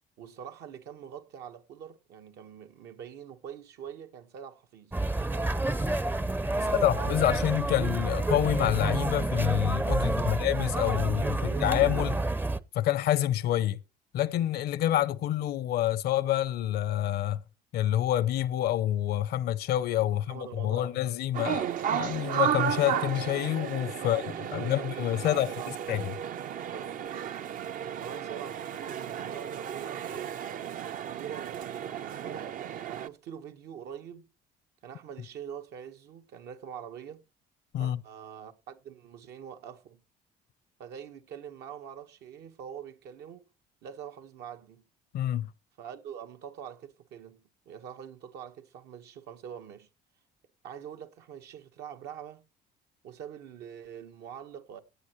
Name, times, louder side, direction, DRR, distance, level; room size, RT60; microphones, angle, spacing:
voice 1, 0.2-5.0 5.3-5.6 6.5-7.4 10.0-10.4 11.1-11.9 20.1-21.0 24.0-26.1 26.7-27.0 27.9-30.4 31.0-34.3 34.8-37.2 37.8-40.0 40.8-43.5 43.8-44.8 45.8-49.9 50.6-52.4 53.0-54.8, right 8 dB, 80° right, 1.4 m, -44 dB
sound 1, 4.9-12.6, right 2 dB, 10° right, 0.5 m, -29 dB
voice 2, 6.8-12.2 12.7-13.8 14.1-17.4 17.7-24.2 24.5-25.5 25.9-26.1 37.7-38.0 45.1-45.5, left 12 dB, 70° left, 0.7 m, -27 dB
sound 2, 21.3-33.1, right 9 dB, 55° right, 0.6 m, -34 dB
17.0 x 9.3 x 3.1 m
cardioid pair, 110°, 17 cm